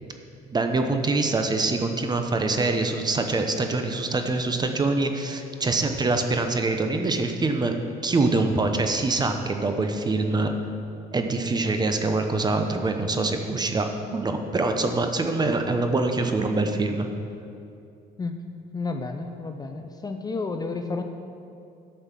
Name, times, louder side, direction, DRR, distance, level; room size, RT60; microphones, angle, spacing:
voice 1, 0.5-7.7 8.0-10.5 11.1-17.1, right 3 dB, 25° right, 6 dB, 0.9 m, -24 dB
voice 2, 18.7-21.0, left 3 dB, 20° left, 6 dB, 0.6 m, -31 dB
11.0 x 5.5 x 7.4 m, 2.6 s
cardioid pair, 110°, 17 cm